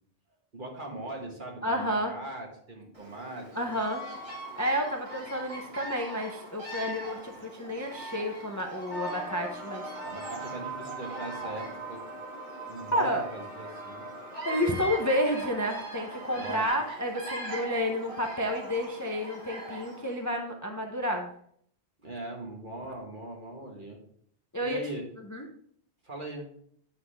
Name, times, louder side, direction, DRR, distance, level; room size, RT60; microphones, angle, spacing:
voice 1, 0.5-3.8 10.0-12.1 12.7-14.1 16.3-16.7 22.0-24.0 24.6-25.0 26.0-26.5, right 1 dB, 45° right, 0 dB, 1.8 m, -40 dB
voice 2, 1.6-2.1 3.5-4.0 4.6-9.9 12.9-13.2 14.4-21.3 24.5-24.8 25.3-25.4, equal, 20° left, 2 dB, 0.6 m, -30 dB
Bird vocalization bird call bird song, 2.9-20.2, right 1 dB, 30° right, 1.9 m, -41 dB
sound 1, 8.9-16.7, right 3 dB, 85° right, 1.5 m, -42 dB
9.3 x 5.7 x 3.4 m, 0.64 s
omnidirectional pair, 1.2 m